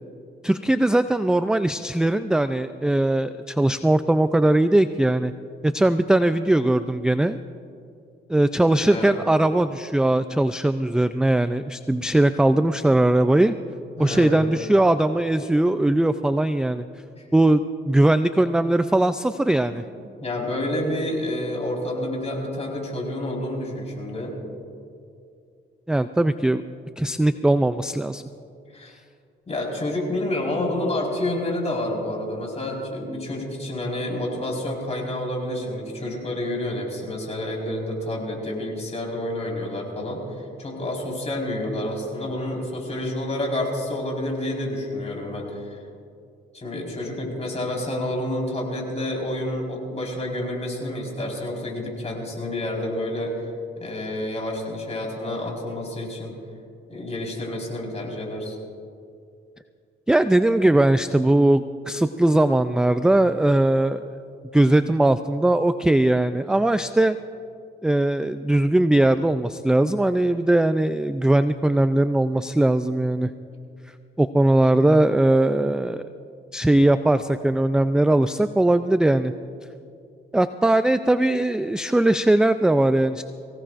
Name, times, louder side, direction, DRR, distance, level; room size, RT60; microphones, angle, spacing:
voice 1, 0.4-5.3 5.6-7.4 8.3-13.5 14.0-16.9 17.3-19.8 25.9-26.6 27.0-28.2 60.1-64.0 64.5-67.2 67.8-73.3 74.2-76.0 76.5-79.3 80.3-83.2, right 1 dB, 5° right, 11 dB, 0.3 m, -20 dB
voice 2, 14.0-14.5 20.2-24.4 28.7-28.9 29.5-45.6 46.5-53.5 53.8-56.3 56.9-58.6, left 1 dB, 30° left, -1 dB, 4.5 m, -29 dB
23.5 x 17.0 x 2.5 m, 2.4 s
cardioid pair, 90°, 20 cm